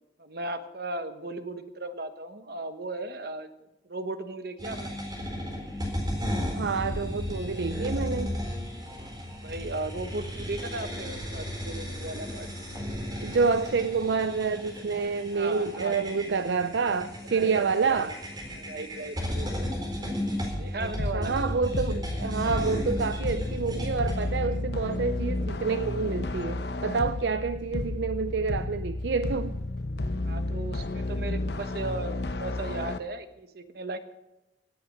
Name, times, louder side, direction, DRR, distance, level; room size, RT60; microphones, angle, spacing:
voice 1, 0.2-3.5 3.8-5.0 9.4-12.5 15.3-16.0 17.3-18.2 18.5-19.5 20.5-21.4 30.2-34.1, right 2 dB, 60° right, 9 dB, 1.2 m, -36 dB
sound 1, 4.6-24.5, left 1 dB, 25° right, 4.2 m, -34 dB
voice 2, 6.6-8.4 13.2-18.1 20.8-29.6, right 5 dB, 75° right, 12 dB, 0.5 m, -28 dB
sound 2, 21.0-33.0, left 2 dB, 65° left, 0.8 m, -32 dB
18.0 x 8.5 x 6.4 m, 0.96 s
head